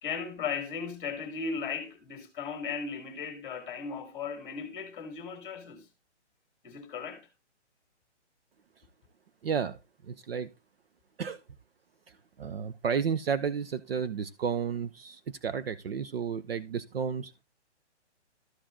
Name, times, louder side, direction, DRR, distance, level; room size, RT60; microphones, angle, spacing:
voice 1, 0.0-5.9 6.6-7.3, left 5 dB, 15° left, 2.0 m, -36 dB
voice 2, 9.4-9.8 10.0-10.5 11.2-11.4 12.1-17.3, right 7 dB, 55° right, 0.6 m, -32 dB
13.0 x 5.0 x 3.7 m
hypercardioid pair, 170°, 35 cm